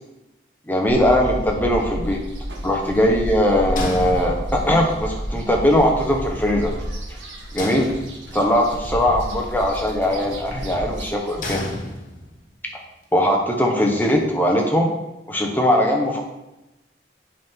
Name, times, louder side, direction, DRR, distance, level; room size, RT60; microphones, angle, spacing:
voice 1, 0.7-2.2 2.6-6.7 7.5-7.9 8.3-11.6 13.1-14.9 15.3-16.2, left 1 dB, 10° left, 0 dB, 1.1 m, -20 dB
sound 1, 0.9-11.4, equal, 85° right, 1.5 m, -31 dB
sound 2, 3.8-4.8 7.6-8.6 11.4-12.5, left 1 dB, 45° left, 1.2 m, -32 dB
8.5 x 6.0 x 3.8 m, 0.94 s
head